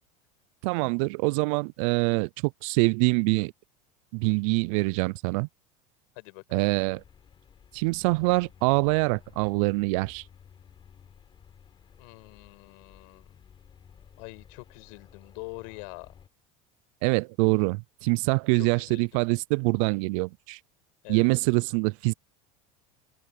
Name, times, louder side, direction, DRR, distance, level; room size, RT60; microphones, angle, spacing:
voice 1, 0.6-2.3 2.6-3.5 4.1-5.5 6.5-7.0 7.7-10.2 17.0-20.6 21.1-22.1, right 29 dB, 65° right, 0.4 m, -25 dB
voice 2, 6.1-6.7 12.0-13.3 14.2-16.1 18.5-19.1 21.0-21.3, left 33 dB, 70° left, 6.6 m, -44 dB
sound 1, 6.7-16.3, left 8 dB, 30° left, 4.0 m, -54 dB
supercardioid pair, 130°, 18 cm